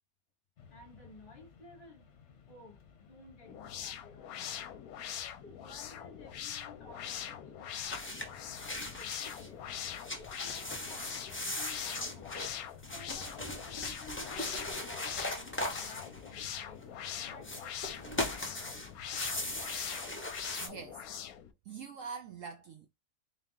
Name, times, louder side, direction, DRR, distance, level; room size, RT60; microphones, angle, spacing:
Mechanisms, 0.6-20.0, left 7 dB, 55° left, 1.0 m, -56 dB
voice 1, 0.7-2.1 2.5-4.7 5.2-9.6 10.2-12.5 12.9-16.8 17.1-18.8 20.4-20.6, left 3 dB, 40° left, 1.1 m, -55 dB
sound 1, 3.5-21.5, left 9 dB, 70° left, 1.0 m, -43 dB
sound 2, 7.8-9.5 9.8-16.8 17.4-20.7, left 1 dB, 15° left, 0.4 m, -39 dB
voice 2, 20.6-21.0 21.7-22.9, right 6 dB, 65° right, 0.8 m, -44 dB
3.8 x 2.8 x 3.6 m
omnidirectional pair, 1.7 m